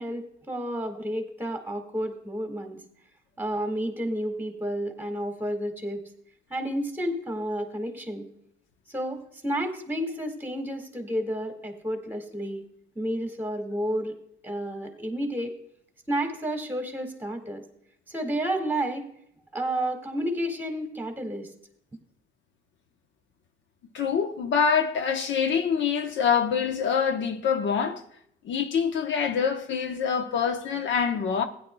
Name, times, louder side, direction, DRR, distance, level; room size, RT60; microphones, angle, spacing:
voice 1, 0.0-2.8 3.4-6.1 6.5-8.3 8.9-12.6 13.0-14.2 14.4-15.6 16.1-17.6 18.1-19.0 19.5-21.5, right 1 dB, 10° right, 2.0 m, -31 dB
voice 2, 23.9-28.0 28.4-31.5, left 6 dB, 70° left, 1.0 m, -25 dB
16.0 x 10.0 x 2.3 m
cardioid pair, 90°, 20 cm